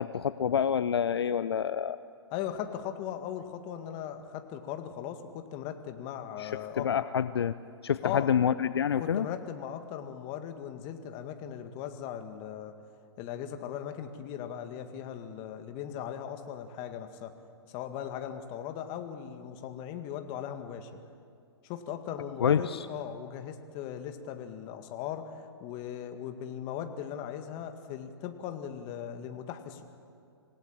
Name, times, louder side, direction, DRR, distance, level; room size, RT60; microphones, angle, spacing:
voice 1, 0.0-2.0 6.4-7.6 7.8-9.3 22.4-22.9, left 8 dB, 70° left, 14 dB, 0.6 m, -27 dB
voice 2, 2.3-6.9 8.0-8.3 9.0-12.8 13.2-17.3 17.7-20.9 21.6-29.8, left 9 dB, 35° left, 7 dB, 2.0 m, -38 dB
26.5 x 17.5 x 8.9 m, 2.4 s
figure-of-eight pair, 120°, 14 cm